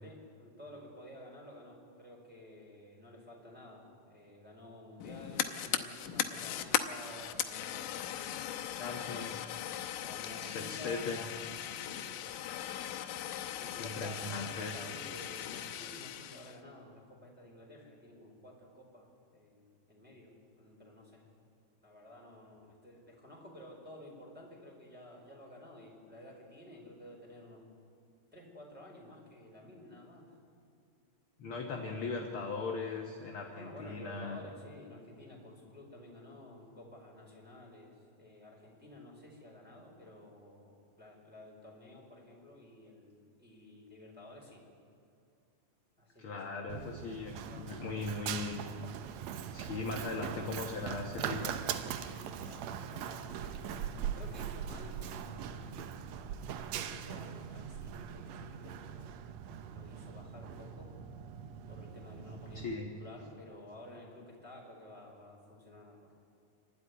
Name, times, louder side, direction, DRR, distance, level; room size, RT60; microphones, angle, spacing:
voice 1, 0.0-8.6 9.9-11.1 11.8-12.1 13.5-21.2 21.8-27.7 28.3-30.3 33.5-44.6 46.0-46.4 46.7-46.9 47.4-48.1 51.9-56.0 56.6-59.2 59.6-60.9 61.7-66.1, left 1 dB, 5° right, -3 dB, 4.2 m, -52 dB
Fire, 5.0-16.6, left 11 dB, 75° left, 2.4 m, -38 dB
voice 2, 8.8-9.5 10.4-11.3 13.8-14.7 31.4-34.4 46.2-48.6 49.5-51.6 62.5-62.9, left 4 dB, 55° left, 1 dB, 1.6 m, -39 dB
Run, 46.7-62.7, right 8 dB, 75° right, 1.6 m, -41 dB
27.5 x 12.0 x 9.6 m, 2.4 s
omnidirectional pair, 4.0 m